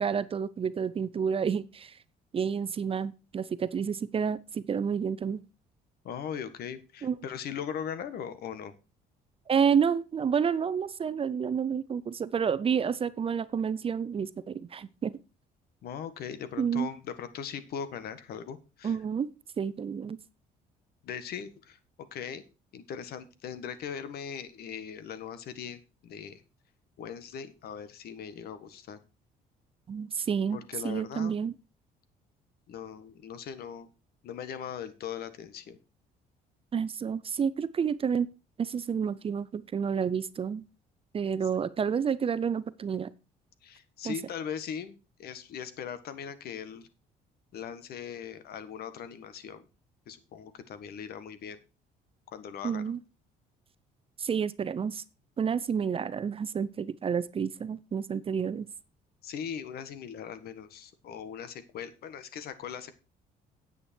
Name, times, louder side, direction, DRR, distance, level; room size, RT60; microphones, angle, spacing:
voice 1, 0.0-1.9 2.3-5.4 7.0-7.2 9.5-15.2 16.6-16.9 18.8-19.3 19.6-20.2 29.9-30.6 30.8-31.5 36.7-38.3 38.6-40.6 41.1-43.1 44.0-44.2 52.6-53.0 54.2-55.0 55.4-58.7, right 7 dB, 35° right, 16 dB, 0.7 m, -29 dB
voice 2, 6.0-8.7 15.8-19.0 21.0-21.8 22.1-22.4 22.7-26.4 27.0-29.0 30.5-31.3 32.7-33.9 34.2-35.8 43.6-46.9 47.5-49.6 50.1-51.6 52.3-52.9 59.2-62.9, left 8 dB, 65° left, 13 dB, 1.5 m, -39 dB
9.9 x 8.3 x 4.5 m, 0.30 s
cardioid pair, 110°, 17 cm